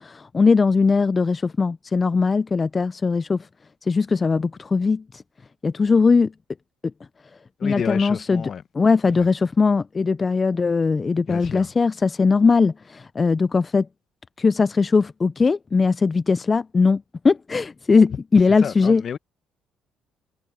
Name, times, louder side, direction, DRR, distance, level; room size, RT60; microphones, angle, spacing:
voice 1, 0.0-3.5 3.8-5.2 5.6-6.3 7.6-8.5 8.7-13.9 14.4-19.0, left 4 dB, 25° left, 0.3 m, -20 dB
voice 2, 7.6-8.6 11.3-11.7 18.6-19.2, left 7 dB, 45° left, 1.2 m, -30 dB
cardioid pair, 105°, 0 cm